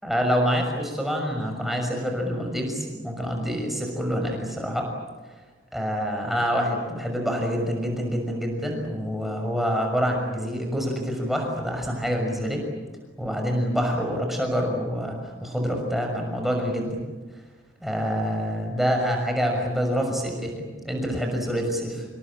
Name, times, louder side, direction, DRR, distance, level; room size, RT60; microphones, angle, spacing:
voice 1, 0.0-4.9 5.7-12.6 13.2-17.0 17.8-22.1, equal, ahead, 2 dB, 6.2 m, -26 dB
27.5 x 22.0 x 9.0 m, 1.3 s
head